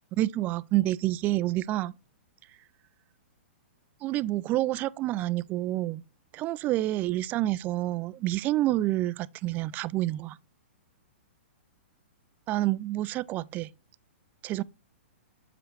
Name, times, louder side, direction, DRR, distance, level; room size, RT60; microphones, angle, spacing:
voice 1, 0.2-1.9 4.0-6.0 6.3-10.4 12.5-13.7 14.4-14.6, right 15 dB, 30° right, 0.3 m, -28 dB
7.7 x 6.9 x 3.2 m
hypercardioid pair, 125°, 6 cm